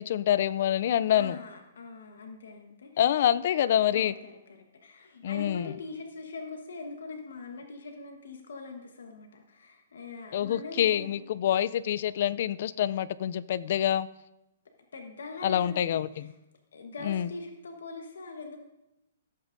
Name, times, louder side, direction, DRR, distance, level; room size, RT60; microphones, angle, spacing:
voice 1, 0.0-1.4 3.0-4.1 5.2-5.8 10.3-14.1 15.4-16.3 17.0-17.3, left 10 dB, 55° left, 16 dB, 0.4 m, -26 dB
voice 2, 1.2-3.0 3.9-4.3 4.8-11.2 14.9-16.3 16.7-18.6, left 3 dB, 85° left, 3 dB, 1.1 m, -42 dB
15.0 x 8.0 x 2.6 m, 0.94 s
hypercardioid pair, 150°, 0 cm